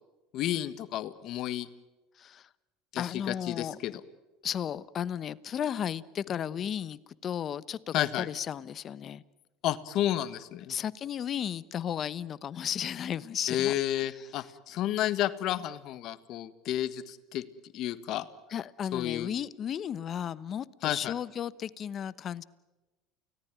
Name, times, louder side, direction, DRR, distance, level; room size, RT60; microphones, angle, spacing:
voice 1, 0.3-1.7 2.9-4.0 7.9-8.3 9.6-10.7 13.5-17.4 17.7-18.3 18.9-19.3 20.8-21.1, left 12 dB, 60° left, 1.6 m, -31 dB
voice 2, 2.2-2.5 3.0-3.8 4.4-9.2 10.7-14.5 18.5-22.4, left 9 dB, 40° left, 1.0 m, -34 dB
29.5 x 18.5 x 9.2 m
supercardioid pair, 100°, 0 cm